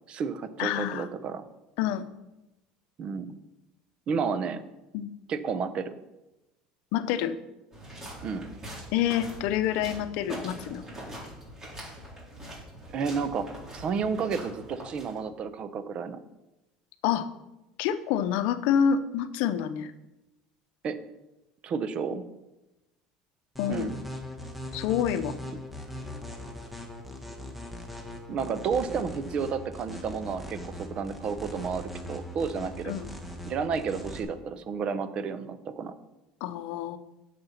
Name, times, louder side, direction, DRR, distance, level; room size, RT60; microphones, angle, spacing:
voice 1, 0.1-1.4 3.0-3.4 4.1-4.6 5.3-5.9 8.2-8.5 12.9-16.2 20.8-21.0 21.6-22.2 23.7-24.0 28.3-32.9 33.4-35.9, right 5 dB, 40° right, 12 dB, 0.8 m, -31 dB
voice 2, 0.6-1.1 1.8-2.1 4.9-5.1 6.9-7.4 8.9-10.8 17.0-17.3 17.8-19.9 23.6-23.9 24.7-25.3 32.8-33.1 36.4-37.0, left 9 dB, 75° left, 11 dB, 0.7 m, -27 dB
sound 1, 7.7-15.4, equal, 20° right, 3.6 m, -43 dB
sound 2, 23.6-34.2, left 1 dB, 5° right, 1.3 m, -40 dB
7.9 x 6.8 x 5.7 m, 0.98 s
supercardioid pair, 125°, 3 cm